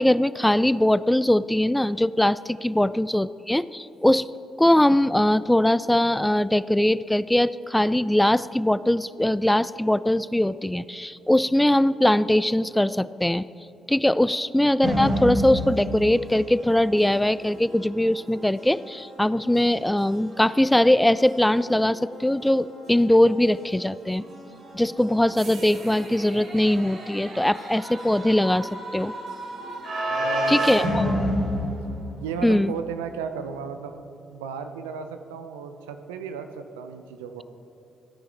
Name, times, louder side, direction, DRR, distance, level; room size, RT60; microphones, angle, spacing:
voice 1, 0.0-4.3 4.6-13.4 13.9-24.2 24.7-29.1 30.5-31.2 32.4-32.7, left 1 dB, 10° left, 17 dB, 0.3 m, -21 dB
sound 1, 14.8-32.6, equal, 60° right, 2.9 m, -32 dB
voice 2, 30.1-31.7 32.2-37.4, right 6 dB, 85° right, 8 dB, 0.6 m, -35 dB
15.5 x 9.6 x 3.4 m, 2.9 s
hypercardioid pair, 45°, 0 cm